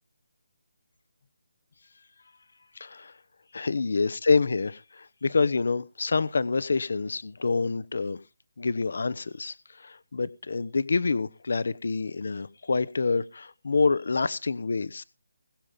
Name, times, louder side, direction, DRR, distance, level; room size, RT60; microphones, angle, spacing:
voice 1, 2.7-3.1 3.5-8.2 8.6-15.0, left 4 dB, 50° left, 1.0 m, -27 dB
20.5 x 7.5 x 5.2 m
hypercardioid pair, 180°, 0 cm